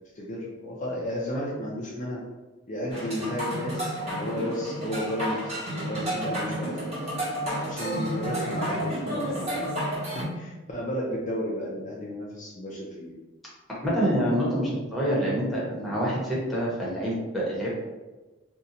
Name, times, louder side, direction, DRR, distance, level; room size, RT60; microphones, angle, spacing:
voice 1, 0.1-2.2 2.7-6.8 7.6-13.1, equal, 35° left, -4 dB, 0.4 m, -33 dB
sound 1, 2.9-10.2, equal, 30° right, 1.1 m, -31 dB
voice 2, 13.7-17.8, equal, ahead, -7 dB, 0.8 m, -26 dB
2.8 x 2.1 x 3.7 m, 1.2 s
head